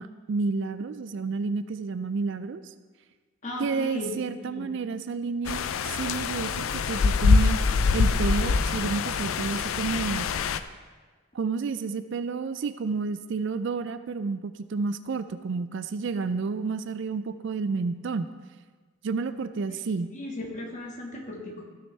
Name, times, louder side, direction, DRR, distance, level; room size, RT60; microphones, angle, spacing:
voice 1, 0.0-2.6 3.6-7.6 7.9-10.3 11.3-18.3 19.0-20.1, right 4 dB, 55° right, 11 dB, 0.3 m, -30 dB
voice 2, 3.4-4.7 19.7-19.8 20.1-21.6, left 1 dB, 35° left, -2 dB, 1.6 m, -36 dB
sound 1, 5.5-10.6, left 4 dB, 70° left, 0.4 m, -24 dB
14.5 x 6.5 x 3.3 m, 1.4 s
head